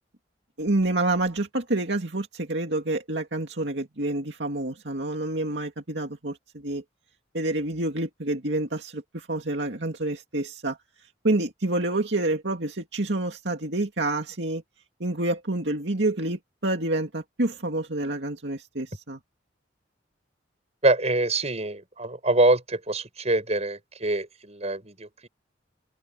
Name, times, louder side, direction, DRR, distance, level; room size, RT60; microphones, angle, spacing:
voice 1, 0.6-6.8 7.3-10.8 11.2-14.6 15.0-19.2, right 2 dB, 70° right, 2.4 m, -28 dB
voice 2, 20.8-25.3, right 2 dB, 35° right, 7.1 m, -25 dB
head